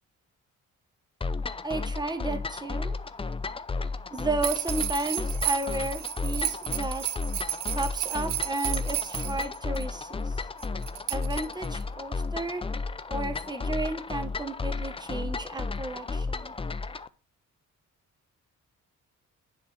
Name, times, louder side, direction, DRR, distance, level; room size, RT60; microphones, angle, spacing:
sound 1, 1.2-17.1, left 3 dB, 20° left, 0.5 m, -33 dB
voice 1, 1.6-3.0 4.1-7.2 7.7-10.4 11.1-12.6 13.1-16.5, right 2 dB, 15° right, 7 dB, 1.2 m, -33 dB
sound 2, 4.4-9.8 10.6-11.8, right 13 dB, 85° right, 0.6 m, -32 dB
10.5 x 3.6 x 4.3 m, 0.34 s
cardioid pair, 105°, 31 cm